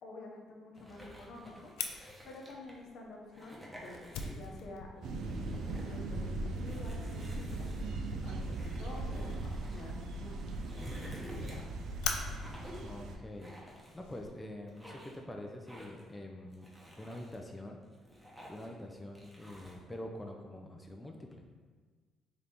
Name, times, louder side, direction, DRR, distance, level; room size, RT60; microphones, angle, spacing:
voice 1, 0.0-4.0 4.3-5.5 5.9-11.6, left 2 dB, 65° left, -1 dB, 0.7 m, -50 dB
sound 1, 0.7-2.8 3.3-4.6 5.0-6.0 6.6-9.8 10.3-11.8 12.3-12.9 13.4-14.3 14.7-15.2 15.7-16.1 16.5-17.4 17.8-18.8 19.1-19.8, equal, 10° right, 1.0 m, -52 dB
Fire, 1.8-14.3, left 5 dB, 85° left, 0.3 m, -45 dB
sound 2, 5.0-13.2, right 2 dB, 70° right, 0.4 m, -39 dB
voice 2, 12.8-16.7 17.0-17.8 18.5-21.5, left 1 dB, 15° left, 2 dB, 0.4 m, -46 dB
3.8 x 2.8 x 3.5 m, 1.5 s
supercardioid pair, 70°, 0 cm